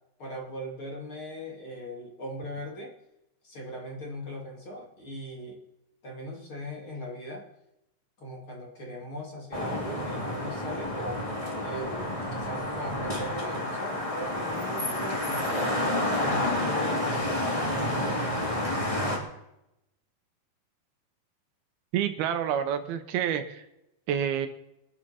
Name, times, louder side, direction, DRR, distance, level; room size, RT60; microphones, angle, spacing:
voice 1, 0.2-2.9 3.4-5.6 6.0-7.4 8.2-11.3 11.6-15.8 16.2-18.2, equal, 40° left, -2 dB, 2.7 m, -39 dB
sound 1, 9.5-19.2, left 1 dB, 10° left, 2.2 m, -29 dB
voice 2, 21.9-23.6 24.1-24.5, right 9 dB, 80° right, 9 dB, 2.9 m, -28 dB
23.0 x 11.0 x 4.3 m, 0.88 s
omnidirectional pair, 4.4 m